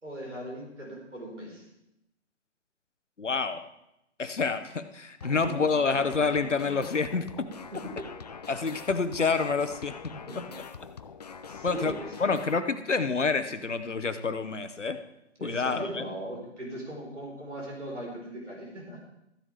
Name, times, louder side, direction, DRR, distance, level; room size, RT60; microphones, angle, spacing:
voice 1, 0.0-1.7 5.5-5.7 7.7-8.1 10.1-10.5 11.4-12.2 15.4-19.0, right 1 dB, 85° right, -2 dB, 4.4 m, -39 dB
voice 2, 3.2-3.6 4.2-7.5 8.5-10.1 11.6-11.9 12.2-15.0 15.4-16.0, left 4 dB, 85° left, 10 dB, 1.0 m, -28 dB
sound 1, 5.2-12.6, left 6 dB, 35° left, 0.4 m, -43 dB
14.0 x 10.0 x 3.5 m, 0.84 s
figure-of-eight pair, 135°, 35 cm